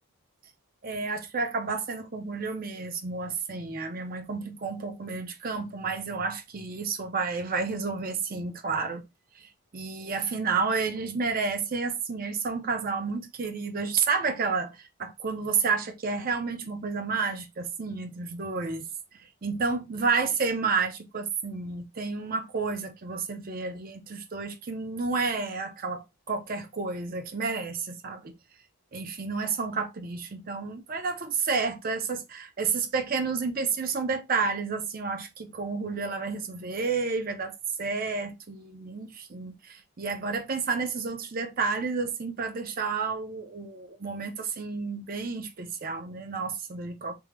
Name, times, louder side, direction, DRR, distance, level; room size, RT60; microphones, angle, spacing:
voice 1, 0.8-9.0 9.3-18.9 19.4-28.3 28.9-37.5 37.8-47.1, right 4 dB, 40° right, 0.5 m, -30 dB
3.5 x 2.0 x 3.1 m
head